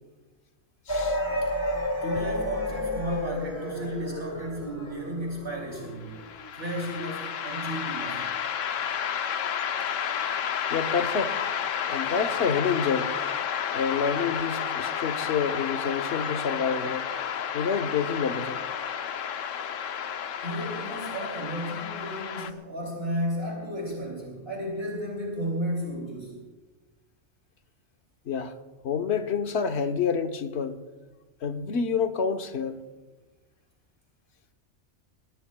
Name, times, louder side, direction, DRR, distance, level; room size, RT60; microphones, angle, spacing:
voice 1, 0.9-1.2 10.7-11.4 11.9-13.1 13.7-17.1 17.5-18.6 28.3-28.5 28.8-30.8 31.4-32.8, left 6 dB, 60° left, 1.2 m, -28 dB
sound 1, 0.9-6.4, left 1 dB, 20° left, 2.2 m, -31 dB
voice 2, 2.0-6.2 6.5-8.3 20.4-26.4, equal, 50° right, 3.1 m, -33 dB
sound 2, 6.1-22.5, left 8 dB, 85° left, 1.1 m, -31 dB
23.0 x 19.5 x 2.3 m
omnidirectional pair, 1.3 m